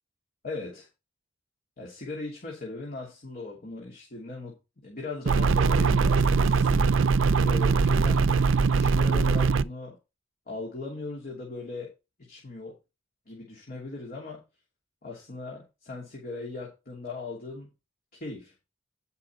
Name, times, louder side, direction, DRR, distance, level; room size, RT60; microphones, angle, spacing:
voice 1, 0.4-0.9 1.8-4.6 4.8-6.8 7.4-8.3 8.7-10.0 10.5-12.7 13.3-14.4 15.0-17.7 18.1-18.5, left 3 dB, 50° left, -3 dB, 3.0 m, -39 dB
sound 1, 5.3-9.6, right 4 dB, 75° right, 0.5 m, -22 dB
10.5 x 5.7 x 4.5 m, 0.26 s
head